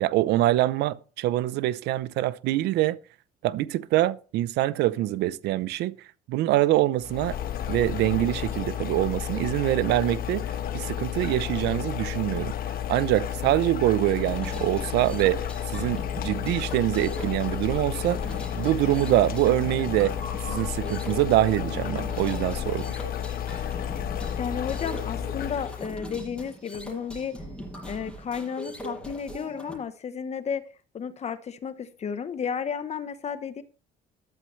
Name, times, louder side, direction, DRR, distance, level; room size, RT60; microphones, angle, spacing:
voice 1, 0.0-3.0 3.4-6.0 6.3-7.4 7.7-10.5 10.7-12.5 12.9-15.5 15.7-18.2 18.5-20.1 20.5-22.9, right 15 dB, 85° right, 0.7 m, -24 dB
sound 1, 7.0-25.9, left 10 dB, 60° left, 1.2 m, -32 dB
sound 2, 14.2-29.7, equal, 5° left, 7.0 m, -40 dB
voice 2, 24.4-27.3 27.9-30.6 30.9-33.6, left 7 dB, 40° left, 1.0 m, -33 dB
13.5 x 12.0 x 3.2 m
cardioid pair, 110°, 17 cm